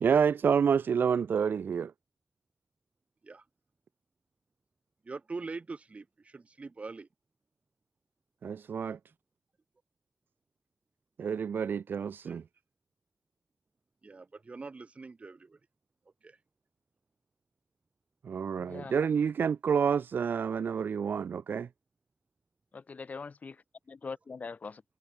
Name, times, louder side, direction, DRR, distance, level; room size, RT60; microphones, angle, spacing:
voice 1, 0.0-1.9 8.4-9.0 11.2-12.4 18.2-21.7, right 7 dB, 55° right, 0.5 m, -28 dB
voice 2, 5.0-7.1 12.3-12.4 14.0-15.6 16.2-16.4, right 3 dB, 35° right, 5.6 m, -43 dB
voice 3, 18.6-18.9 22.7-24.8, left 4 dB, 40° left, 2.0 m, -42 dB
wide cardioid pair, 110°, 4 cm